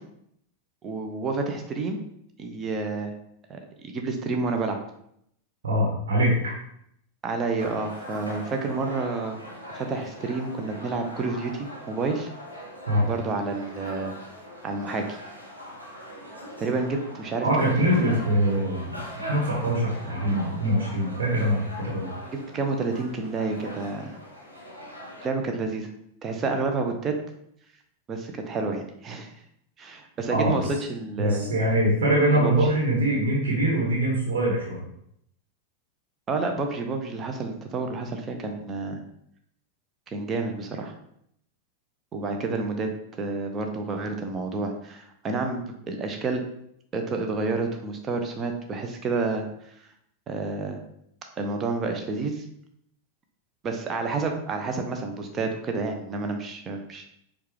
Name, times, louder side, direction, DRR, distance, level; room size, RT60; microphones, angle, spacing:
voice 1, 0.8-2.0 2.4-3.1 3.5-4.8 7.2-9.4 9.7-12.3 13.1-14.2 14.6-15.2 16.6-18.3 22.3-24.2 25.2-25.9 26.2-27.1 28.1-29.3 29.8-30.6 30.9-31.5 32.3-32.5 36.3-39.0 40.1-40.9 42.1-42.9 43.2-45.6 45.9-46.4 46.9-49.5 50.3-50.8 51.4-52.4 53.6-57.1, right 3 dB, 25° right, 4 dB, 0.6 m, -29 dB
voice 2, 5.6-6.3 12.9-13.1 17.4-19.0 19.3-22.1 30.3-30.6 31.2-34.8, right 1 dB, 60° right, -4 dB, 1.2 m, -23 dB
sound 1, 7.6-25.3, equal, 90° right, 0.7 m, -41 dB
4.5 x 2.3 x 3.3 m, 0.72 s
figure-of-eight pair, 90°, 0 cm